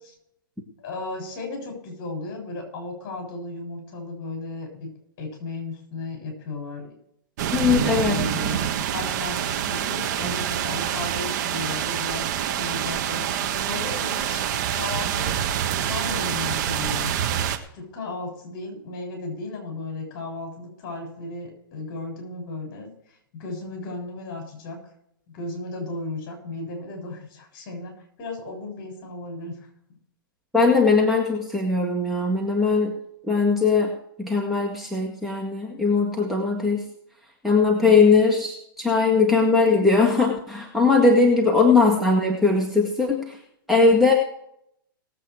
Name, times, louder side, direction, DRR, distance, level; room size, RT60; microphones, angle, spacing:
voice 1, 0.8-4.9 5.2-6.9 7.5-14.5 14.7-15.4 15.9-17.1 17.7-22.9 23.3-24.8 25.3-27.9 28.2-29.6 29.9-30.0 41.6-41.7, left 2 dB, 40° left, 2 dB, 7.2 m, -35 dB
sound 1, 7.4-17.6, right 10 dB, 50° right, 1.5 m, -26 dB
voice 2, 7.5-8.2 30.5-32.9 33.3-36.9 37.4-43.4 43.7-44.1, left 4 dB, ahead, -2 dB, 1.9 m, -20 dB
19.0 x 8.3 x 4.8 m, 0.74 s
hypercardioid pair, 130°, 12 cm